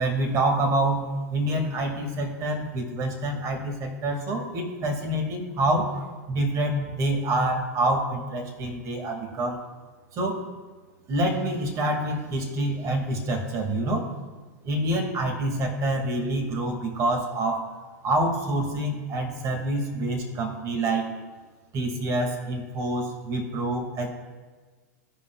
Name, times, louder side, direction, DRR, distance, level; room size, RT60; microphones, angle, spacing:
voice 1, 0.0-9.6 10.1-10.4 11.1-14.1 14.6-17.7 18.0-21.1 21.7-24.1, right 1 dB, 40° right, 2 dB, 2.0 m, -27 dB
16.5 x 5.6 x 2.3 m, 1.4 s
hypercardioid pair, 110°, 9 cm